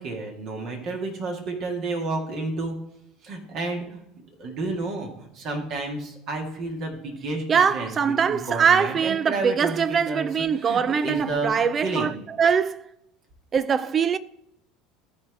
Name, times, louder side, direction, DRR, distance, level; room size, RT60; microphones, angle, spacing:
voice 1, 0.0-2.8 3.2-4.0 4.4-12.1, right 3 dB, 45° right, 1.7 m, -31 dB
voice 2, 7.5-12.9 13.5-14.2, right 6 dB, 30° right, 0.4 m, -22 dB
14.0 x 4.7 x 3.4 m
figure-of-eight pair, 70°, 0 cm